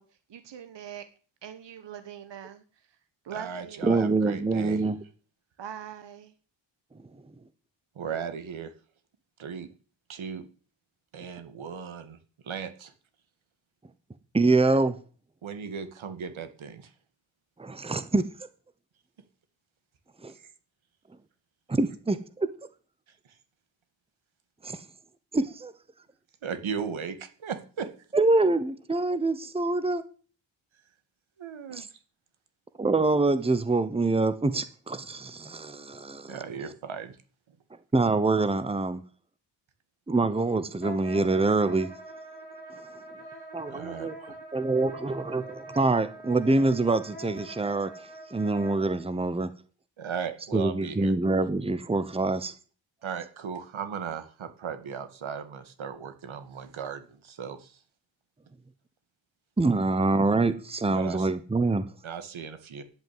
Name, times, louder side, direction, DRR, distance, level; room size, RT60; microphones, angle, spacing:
voice 1, 0.3-1.0 1.4-2.6 3.2-3.9 5.6-6.3, right 9 dB, 65° right, 1.3 m, -42 dB
voice 2, 3.3-4.8 7.9-8.7 9.4-9.7 10.1-10.4 11.1-12.2 12.4-12.9 15.4-16.9 20.3-20.5 23.1-23.4 26.4-27.9 31.4-31.9 36.3-37.2 37.5-37.6 43.7-44.4 50.0-51.1 53.0-57.8 60.9-61.3 62.0-62.8, right 6 dB, 90° right, 2.3 m, -37 dB
voice 3, 3.8-5.0 14.3-15.0 17.6-18.3 20.2-20.3 21.7-22.5 24.6-24.8 25.3-25.7 28.1-30.0 31.7-31.9 32.8-36.4 37.9-39.0 40.1-41.9 43.5-44.1 44.5-49.5 50.5-52.5 59.6-61.9, right 3 dB, 10° right, 1.0 m, -25 dB
Wind instrument woodwind instrument, 40.8-49.0, right 1 dB, 20° left, 3.5 m, -44 dB
10.5 x 8.9 x 9.4 m
wide cardioid pair, 150°, 46 cm